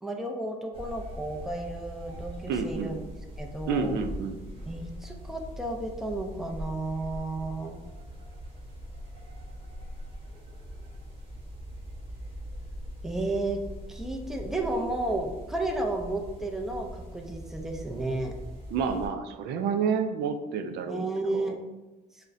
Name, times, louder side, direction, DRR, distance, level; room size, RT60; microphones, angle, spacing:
voice 1, 0.0-3.0 3.4-4.0 4.7-7.8 13.0-13.6 13.9-18.3 20.9-21.6, right 2 dB, ahead, 2 dB, 0.5 m, -32 dB
sound 1, 0.7-19.1, equal, 30° right, 1.2 m, -42 dB
voice 2, 2.5-2.9 3.7-4.4 18.7-21.0 21.3-21.5, right 6 dB, 80° right, 8 dB, 0.4 m, -29 dB
6.1 x 2.1 x 2.6 m, 1.1 s
cardioid pair, 110°, 17 cm